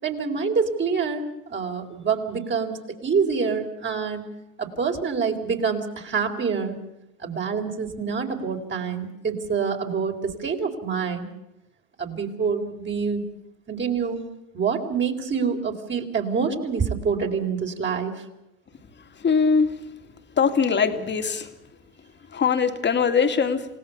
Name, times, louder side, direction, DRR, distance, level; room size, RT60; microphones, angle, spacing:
voice 1, 0.0-4.3 4.6-6.8 7.2-11.3 12.0-13.2 13.7-14.3 14.5-18.3, right 5 dB, 30° right, 3 dB, 4.0 m, -26 dB
voice 2, 19.2-19.7 20.4-21.5 22.3-23.7, left 5 dB, 25° left, 7 dB, 2.5 m, -21 dB
28.5 x 17.5 x 7.0 m, 0.88 s
hypercardioid pair, 100°, 39 cm